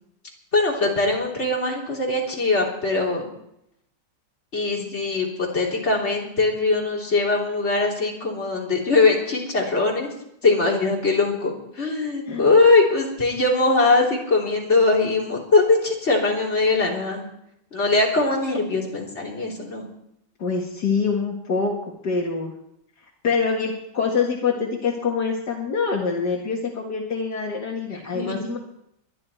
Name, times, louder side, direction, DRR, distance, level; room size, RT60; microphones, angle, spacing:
voice 1, 0.5-3.3 4.5-10.1 10.4-17.2 17.7-19.8 28.0-28.4, left 3 dB, 40° left, -3 dB, 3.8 m, -21 dB
voice 2, 20.4-22.5 23.2-28.6, left 5 dB, 70° left, -1 dB, 2.4 m, -25 dB
22.5 x 11.0 x 4.5 m, 0.78 s
omnidirectional pair, 1.9 m